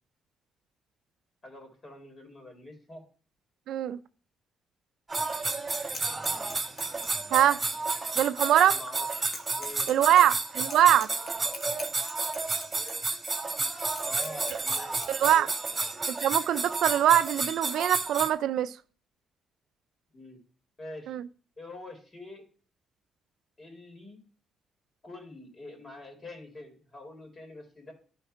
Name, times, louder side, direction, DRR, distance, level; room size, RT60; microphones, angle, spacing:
voice 1, 1.4-3.0 8.5-9.1 9.6-10.3 14.0-15.9 20.1-20.4 20.8-21.2 21.6-22.4 23.6-24.2 25.0-27.9, left 1 dB, 35° left, 4.0 m, -45 dB
voice 2, 3.7-4.0 7.3-7.6 8.2-8.8 9.9-11.1 15.1-15.5 16.2-18.8 21.1-21.2, right 11 dB, 80° right, 0.4 m, -23 dB
sound 1, 5.1-18.3, right 3 dB, 20° right, 2.2 m, -31 dB
sound 2, 5.6-15.1, left 3 dB, 50° left, 1.9 m, -46 dB
11.5 x 4.6 x 4.6 m
cardioid pair, 90°, 0 cm